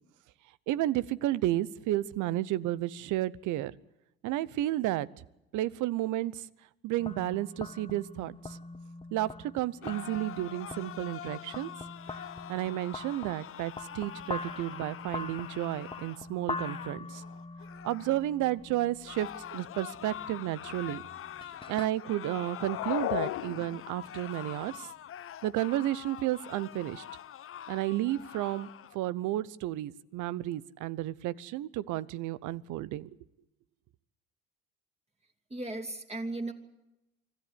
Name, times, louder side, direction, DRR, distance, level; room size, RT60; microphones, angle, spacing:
voice 1, 0.7-3.7 4.2-5.1 5.5-6.5 6.8-8.6 9.1-11.7 12.5-17.2 17.8-21.0 21.7-24.9 25.4-27.0 27.7-33.1, right 15 dB, 70° right, 19 dB, 0.9 m, -32 dB
sound 1, 7.0-21.9, left 3 dB, 15° left, 1.5 m, -43 dB
sound 2, 9.8-18.3 19.0-29.0, left 10 dB, 45° left, 0.9 m, -44 dB
sound 3, 22.5-24.1, left 15 dB, 70° left, 1.1 m, -34 dB
voice 2, 35.5-36.5, right 2 dB, 20° right, 3 dB, 3.0 m, -36 dB
25.0 x 14.0 x 10.0 m, 0.93 s
supercardioid pair, 75°, 31 cm